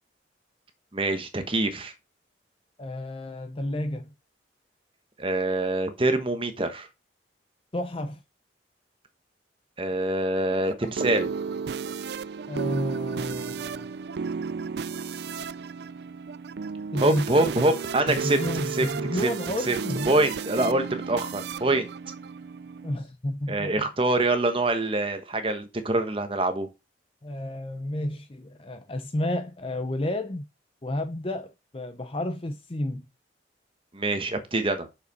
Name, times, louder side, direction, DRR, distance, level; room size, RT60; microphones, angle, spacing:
voice 1, 0.9-1.9 5.2-6.9 9.8-11.3 17.0-18.4 18.7-18.9 19.2-19.3 19.7-19.8 20.1-21.9 23.5-26.7 33.9-34.9, right 2 dB, 30° right, 1.1 m, -25 dB
voice 2, 2.8-4.1 7.7-8.2 12.5-13.9 16.9-17.5 18.1-20.1 22.8-23.9 27.2-30.4 30.8-33.0, left 1 dB, 30° left, 0.6 m, -31 dB
sound 1, 10.5-23.0, right 5 dB, 60° right, 0.4 m, -33 dB
6.6 x 5.7 x 5.4 m
head